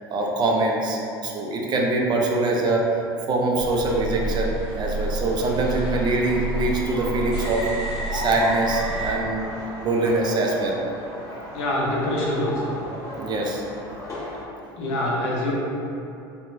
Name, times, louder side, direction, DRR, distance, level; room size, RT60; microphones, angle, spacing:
voice 1, 0.1-2.8 3.3-7.6 8.1-10.8 13.2-13.6, right 2 dB, 35° right, -1 dB, 0.4 m, -23 dB
sound 1, 3.6-9.1, right 3 dB, 90° left, 0.8 m, -29 dB
sound 2, 4.9-14.4, left 1 dB, 30° left, 1.1 m, -37 dB
voice 2, 11.5-12.7 14.8-15.5, left 1 dB, 60° left, -5 dB, 0.7 m, -25 dB
2.8 x 2.2 x 2.6 m, 2.7 s
hypercardioid pair, 75°, 12 cm